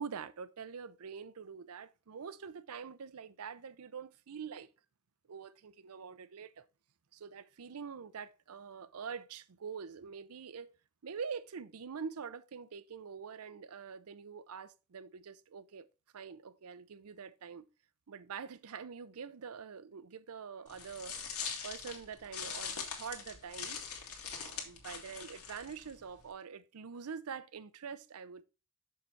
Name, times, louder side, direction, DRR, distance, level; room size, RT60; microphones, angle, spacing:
voice 1, 0.0-4.7 5.3-6.7 7.1-10.7 11.0-15.9 16.1-17.7 18.1-21.2 21.6-23.8 24.3-28.4, right 6 dB, 80° right, 0.5 m, -45 dB
sound 1, 20.7-26.3, left 6 dB, 90° left, 1.9 m, -42 dB
6.5 x 5.7 x 4.5 m
head